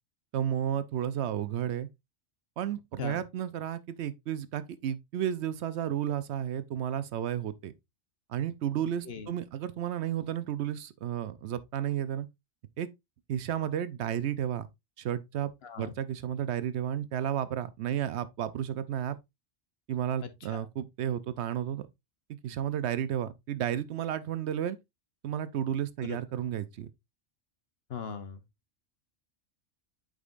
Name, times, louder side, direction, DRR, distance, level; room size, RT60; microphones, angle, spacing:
voice 1, 0.3-1.9 2.6-7.7 8.3-12.3 12.8-12.9 13.3-14.7 15.0-15.5 15.8-19.2 19.9-21.9 22.4-24.8 25.2-26.9, right 10 dB, 70° right, 0.8 m, -32 dB
voice 2, 15.6-15.9 20.2-20.7 26.0-26.2 27.9-28.4, left 6 dB, 60° left, 1.0 m, -40 dB
8.3 x 5.2 x 2.4 m
omnidirectional pair, 1.3 m